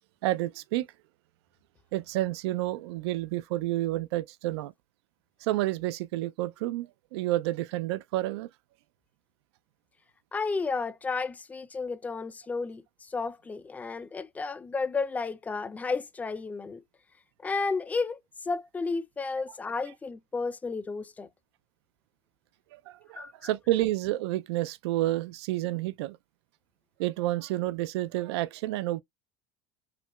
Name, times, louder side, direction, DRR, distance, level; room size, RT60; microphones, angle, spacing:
voice 1, 0.2-0.9 1.9-4.7 5.4-8.5 22.7-26.2 27.0-29.0, right 16 dB, 85° right, 0.4 m, -30 dB
voice 2, 10.3-12.8 13.1-16.8 17.4-18.2 18.5-21.3 23.2-23.3, left 4 dB, 10° left, 0.4 m, -32 dB
5.8 x 2.2 x 2.3 m
supercardioid pair, 135°, 13 cm